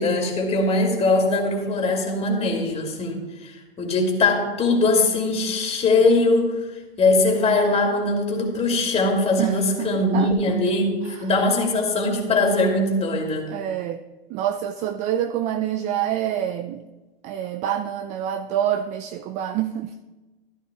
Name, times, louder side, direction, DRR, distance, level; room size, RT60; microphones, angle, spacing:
voice 1, 0.0-6.5 7.0-13.5, left 2 dB, 20° left, 1 dB, 2.3 m, -21 dB
voice 2, 9.4-10.5 11.0-11.3 13.5-14.0 14.3-16.8 17.2-19.9, right 10 dB, 25° right, 10 dB, 0.3 m, -27 dB
14.5 x 12.0 x 2.3 m, 1.2 s
hypercardioid pair, 105°, 29 cm